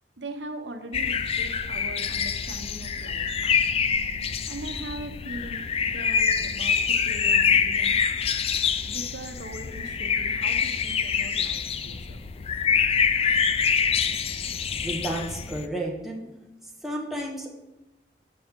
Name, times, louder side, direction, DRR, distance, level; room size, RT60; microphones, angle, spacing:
voice 1, 0.2-3.6 4.5-8.0 8.9-12.2, right 1 dB, 90° right, 6 dB, 0.8 m, -40 dB
sound 1, 0.9-15.7, left 6 dB, 35° left, 0.4 m, -25 dB
voice 2, 14.8-16.2 16.8-17.5, right 1 dB, ahead, -2 dB, 1.2 m, -31 dB
7.4 x 6.1 x 3.6 m, 0.98 s
head